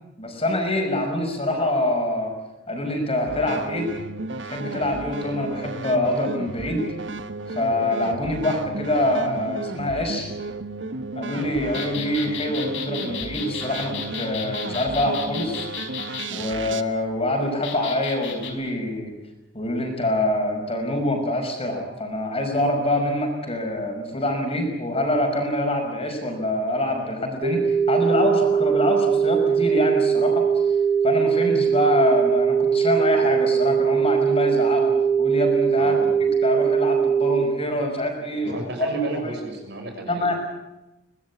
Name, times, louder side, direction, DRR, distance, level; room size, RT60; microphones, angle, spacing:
voice 1, 0.2-2.3 2.7-3.9 4.4-6.9 7.5-10.3 11.2-15.7 16.3-19.1 19.5-30.4 31.0-34.9 35.2-35.9 36.4-38.6 39.2-39.4 40.1-40.4, left 1 dB, 35° left, 3 dB, 5.8 m, -25 dB
sound 1, 3.2-16.8, right 3 dB, 85° right, 1.4 m, -33 dB
sound 2, 11.7-16.3 17.6-18.5, left 7 dB, 85° left, 4.8 m, -34 dB
sound 3, 27.4-37.4, right 7 dB, 40° right, 2.5 m, -21 dB
voice 2, 35.8-36.2 38.4-40.3, right 2 dB, 65° right, 3 dB, 6.6 m, -32 dB
23.0 x 19.5 x 8.5 m, 0.96 s
head